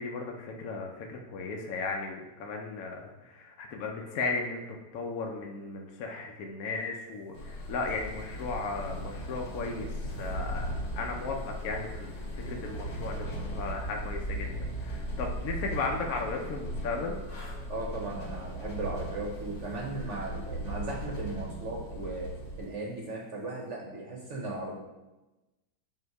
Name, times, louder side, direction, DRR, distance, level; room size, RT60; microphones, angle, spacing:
voice 1, 0.0-4.6 4.9-17.2, left 3 dB, 65° left, 1 dB, 1.0 m, -36 dB
elevator-background, 7.3-22.6, equal, 50° left, 2.2 m, -37 dB
voice 2, 17.7-22.3 22.6-24.8, right 2 dB, 50° right, -1 dB, 0.9 m, -37 dB
7.7 x 2.9 x 4.6 m, 1.0 s
omnidirectional pair, 2.0 m